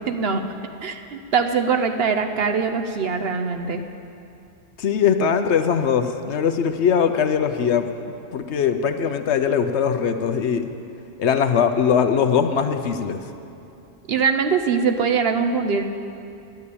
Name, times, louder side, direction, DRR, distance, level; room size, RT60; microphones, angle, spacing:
voice 1, 0.1-0.5 0.8-3.8 14.1-15.9, right 5 dB, 60° right, 6 dB, 0.9 m, -22 dB
voice 2, 4.8-7.9 8.3-10.7 11.2-13.2, left 7 dB, 65° left, 8 dB, 0.9 m, -21 dB
10.5 x 10.0 x 8.3 m, 2.7 s
omnidirectional pair, 1.3 m